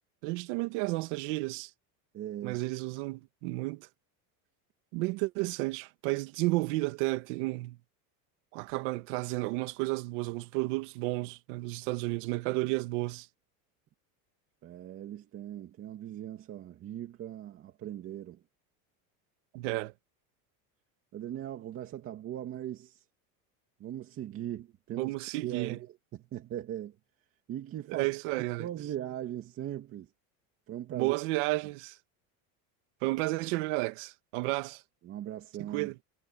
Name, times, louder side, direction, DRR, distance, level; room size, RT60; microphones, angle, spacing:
voice 1, 0.2-1.7 2.4-3.9 4.9-7.8 8.5-13.3 19.5-19.9 25.0-25.8 27.9-28.7 30.9-32.0 33.0-34.8 35.6-36.0, right 21 dB, 65° right, 2.0 m, -32 dB
voice 2, 2.1-2.6 14.6-18.4 21.1-23.0 23.8-26.9 27.5-28.1 28.6-30.1 30.7-31.2 35.0-35.9, right 12 dB, 35° right, 2.5 m, -39 dB
cardioid pair, 165°, 40 cm